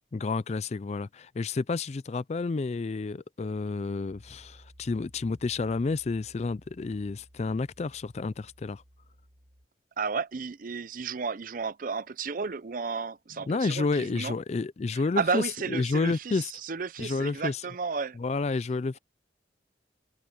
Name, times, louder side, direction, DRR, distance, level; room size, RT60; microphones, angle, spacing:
voice 1, 0.1-8.8 13.5-16.5 17.0-17.6 18.1-19.0, left 3 dB, 40° left, 0.4 m, -30 dB
Piano, 4.1-9.7, equal, 65° right, 5.3 m, -56 dB
voice 2, 10.0-14.3 15.2-16.4 16.7-18.2, right 5 dB, 50° right, 0.6 m, -32 dB
head